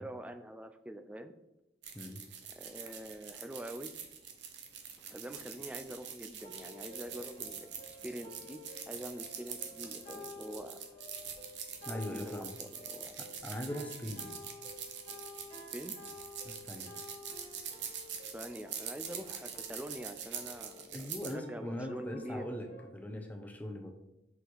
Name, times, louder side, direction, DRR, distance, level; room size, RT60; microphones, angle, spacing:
voice 1, 0.0-1.3 2.6-3.9 5.1-8.6 8.9-10.8 11.9-13.2 15.7-16.0 18.2-22.5, right 1 dB, 5° right, 8 dB, 0.4 m, -45 dB
sound 1, 1.8-21.3, right 8 dB, 85° right, 1.0 m, -44 dB
sound 2, 6.4-22.9, left 3 dB, 40° left, 1.4 m, -52 dB
voice 2, 11.9-12.6 13.2-14.4 16.4-17.0 20.9-22.7 22.9-23.9, left 1 dB, 10° left, 4 dB, 0.8 m, -41 dB
6.2 x 5.6 x 3.9 m, 0.94 s
head